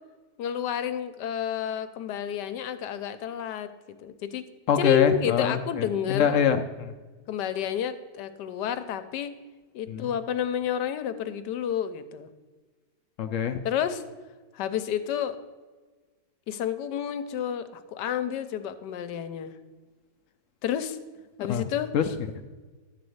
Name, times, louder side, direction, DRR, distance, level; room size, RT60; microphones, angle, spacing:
voice 1, 0.4-4.4 4.8-6.4 7.3-9.3 9.7-12.3 13.6-14.0 14.5-15.4 16.5-19.5 20.6-21.0 21.4-21.9, left 9 dB, 90° left, 11 dB, 1.3 m, -30 dB
voice 2, 4.7-6.9 9.9-10.1 13.2-13.6 21.5-21.6 21.9-22.4, left 8 dB, 65° left, 7 dB, 0.8 m, -25 dB
12.0 x 4.1 x 7.8 m, 1.3 s
omnidirectional pair, 1.8 m